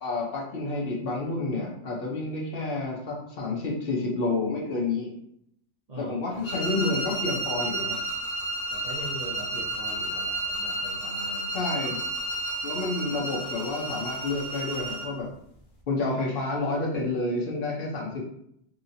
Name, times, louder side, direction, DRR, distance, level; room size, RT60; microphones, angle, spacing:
voice 1, 0.0-5.1 6.0-8.0 11.5-12.0 12.6-15.3 15.9-18.3, left 2 dB, 55° left, -2 dB, 1.0 m, -29 dB
sound 1, 6.4-15.2, right 2 dB, 40° left, 0.6 m, -32 dB
voice 2, 8.7-11.5, equal, 45° right, -6 dB, 0.5 m, -41 dB
3.0 x 2.7 x 2.7 m, 0.73 s
omnidirectional pair, 1.2 m